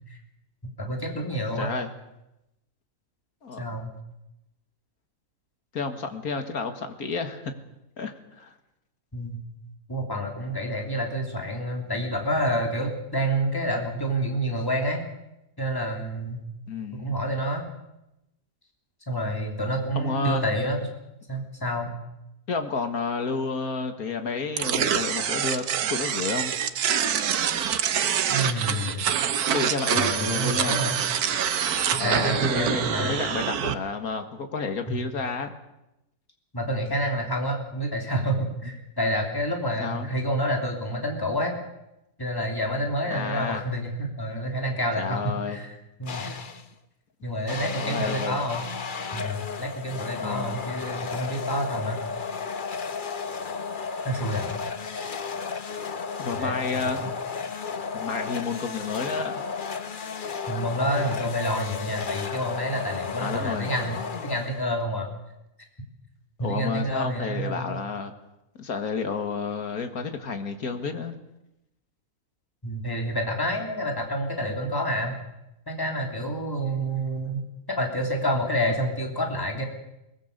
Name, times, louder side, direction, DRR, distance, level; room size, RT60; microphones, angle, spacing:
voice 1, 0.6-1.7 3.6-3.9 9.1-9.4 9.9-15.0 15.6-16.4 17.0-17.7 19.1-20.8 21.3-21.9 28.3-29.1 29.9-31.0 31.9-33.2 34.9-35.0 36.5-41.5 42.2-45.7 46.0-46.4 47.2-48.7 49.1-52.0 54.0-54.5 56.4-56.6 56.8-57.1 60.5-65.1 66.4-67.7 72.6-75.2 75.7-77.4 77.7-79.6, equal, 15° left, 1 dB, 3.2 m, -28 dB
voice 2, 1.6-1.9 3.4-3.8 5.7-7.5 8.0-8.6 16.7-17.1 20.0-20.4 22.5-25.6 25.9-26.5 29.5-30.8 32.0-35.5 39.8-40.1 43.1-43.7 45.0-45.6 47.8-48.4 50.2-50.7 56.2-57.1 57.9-59.4 63.2-63.7 66.4-68.1 68.6-71.2, left 4 dB, 75° left, 7 dB, 2.2 m, -30 dB
sound 1, 24.6-33.7, right 8 dB, 80° right, 1.5 m, -26 dB
sound 2, 46.1-46.7 47.5-64.8, left 5 dB, 40° left, 1.0 m, -34 dB
22.5 x 20.0 x 6.8 m, 0.91 s
omnidirectional pair, 1.6 m